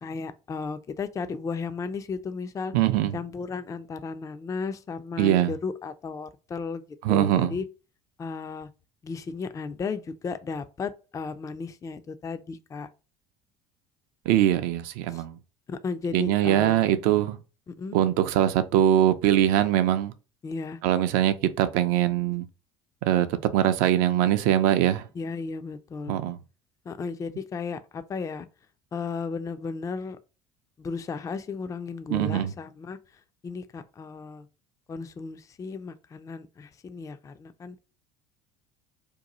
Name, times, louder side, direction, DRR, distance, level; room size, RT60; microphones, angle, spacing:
voice 1, 0.0-2.7 3.1-6.8 7.1-7.7 8.2-8.7 9.0-12.9 15.1-15.2 15.7-17.0 17.7-17.9 20.4-20.8 25.2-26.2 26.9-28.5 28.9-30.2 30.8-34.5 34.9-37.8, left 4 dB, 20° left, 0.3 m, -34 dB
voice 2, 2.7-3.2 5.2-5.5 7.0-7.5 14.3-15.4 16.1-17.4 17.9-20.1 20.8-22.5 23.0-25.1 26.1-26.4 32.1-32.5, right 12 dB, 65° right, 0.4 m, -22 dB
2.7 x 2.3 x 4.0 m
hypercardioid pair, 70°, 16 cm